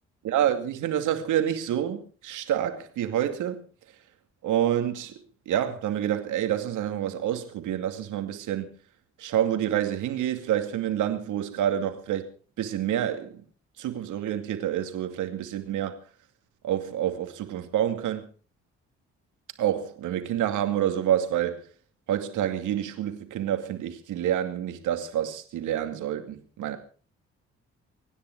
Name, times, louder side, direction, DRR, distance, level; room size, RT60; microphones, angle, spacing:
voice 1, 0.2-3.6 4.4-5.2 5.5-8.7 9.2-12.3 12.6-13.4 13.8-16.0 16.6-18.3 19.6-21.7 22.1-26.8, right 11 dB, 70° right, 2.5 m, -28 dB
25.0 x 10.0 x 4.7 m
hypercardioid pair, 45°, 31 cm